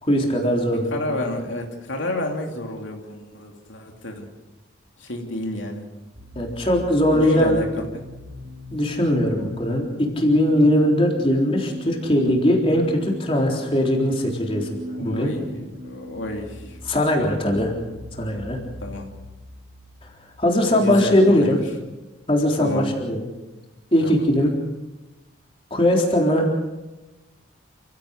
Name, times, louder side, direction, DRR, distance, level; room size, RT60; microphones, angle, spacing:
voice 1, 0.0-1.0 6.4-7.6 8.7-15.3 16.9-17.7 18.1-18.6 20.4-21.6 22.3-23.3 23.9-24.5 25.7-26.5, equal, 30° left, 0 dB, 3.8 m, -20 dB
voice 2, 0.9-4.3 5.0-5.8 7.1-8.0 14.9-16.8 17.3-17.5 18.8-19.1 20.7-21.6 22.6-22.9 24.0-24.2, left 1 dB, 80° left, 2 dB, 2.8 m, -30 dB
sound 1, 6.2-21.7, equal, 65° right, 4.3 m, -39 dB
28.5 x 16.0 x 6.6 m, 1.1 s
head